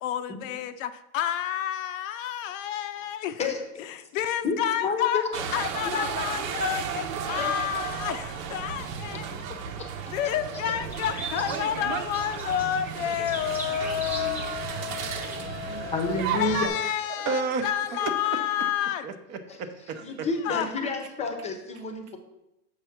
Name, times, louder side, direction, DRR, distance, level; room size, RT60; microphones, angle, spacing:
voice 1, 0.0-3.5 3.8-5.2 5.5-9.4 10.1-19.1 20.4-20.7, left 10 dB, 60° left, 10 dB, 0.6 m, -30 dB
voice 2, 3.4-4.0 4.4-5.4 5.8-6.7 7.2-7.5 9.5-10.0 10.7-10.8 14.1-14.4 15.9-16.7 20.0-22.2, left 3 dB, 15° left, 6 dB, 0.7 m, -31 dB
sound 1, 5.3-16.7, right 7 dB, 65° right, 1.0 m, -34 dB
sound 2, 9.8-15.5, right 2 dB, 5° right, 0.3 m, -41 dB
voice 3, 15.4-15.9 16.8-18.4 19.0-20.3, right 4 dB, 35° right, 7 dB, 0.7 m, -33 dB
6.8 x 4.8 x 5.8 m, 0.88 s
supercardioid pair, 145°, 44 cm